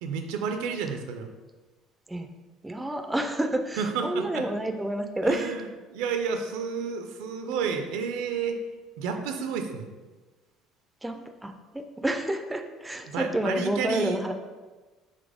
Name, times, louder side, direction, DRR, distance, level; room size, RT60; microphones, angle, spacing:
voice 1, 0.0-1.3 3.8-4.4 5.3-5.6 5.9-8.6 9.0-9.9 13.1-14.2, right 6 dB, 90° right, 6 dB, 0.4 m, -31 dB
voice 2, 2.6-5.6 11.0-14.3, right 1 dB, 10° right, 5 dB, 0.3 m, -29 dB
4.0 x 3.1 x 3.4 m, 1.3 s
cardioid pair, 115°, 0 cm